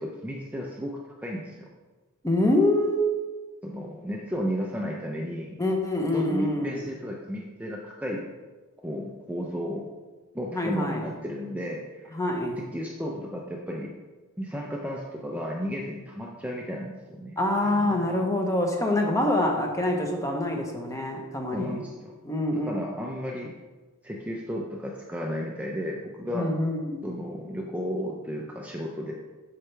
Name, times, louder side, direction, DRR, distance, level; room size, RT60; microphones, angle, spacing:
voice 1, 0.0-1.7 3.6-5.6 6.1-8.2 8.8-9.9 10.3-12.2 12.6-13.9 14.4-17.4 17.6-18.3 21.5-22.2 22.7-23.5 24.0-26.5 27.0-29.1, equal, 5° right, -1 dB, 0.5 m, -33 dB
voice 2, 2.2-3.1 5.6-6.8 10.5-11.0 12.1-12.6 17.4-21.8 22.2-22.8 26.3-27.2, left 1 dB, 15° left, 2 dB, 0.9 m, -25 dB
8.2 x 5.7 x 3.3 m, 1.3 s
head